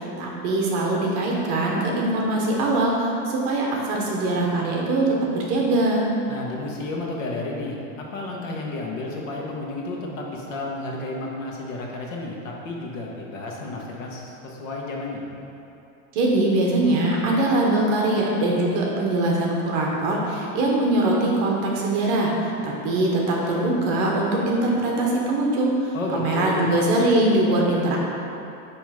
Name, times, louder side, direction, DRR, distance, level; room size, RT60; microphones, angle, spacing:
voice 1, 0.2-5.1 5.3-6.1 16.1-22.3 22.6-28.0, right 2 dB, 30° right, -2 dB, 0.7 m, -22 dB
voice 2, 6.3-15.3 25.9-26.7, left 2 dB, 70° left, -2 dB, 1.3 m, -32 dB
8.8 x 3.1 x 4.8 m, 2.8 s
supercardioid pair, 180°, 40 cm